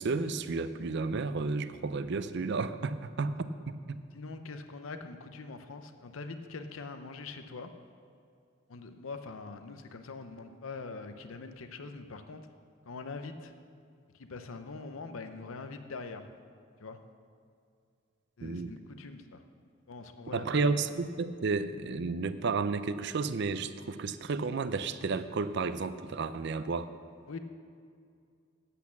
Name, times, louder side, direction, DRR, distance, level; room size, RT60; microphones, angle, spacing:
voice 1, 0.0-4.0 18.4-18.7 20.3-26.9, right 4 dB, 55° right, 12 dB, 0.5 m, -32 dB
voice 2, 4.1-7.7 8.7-12.5 12.9-13.5 14.1-16.3 16.8-17.0 18.4-19.4 19.9-20.8 27.3-27.4, left 4 dB, 75° left, 8 dB, 0.6 m, -43 dB
8.4 x 8.3 x 7.1 m, 2.3 s
head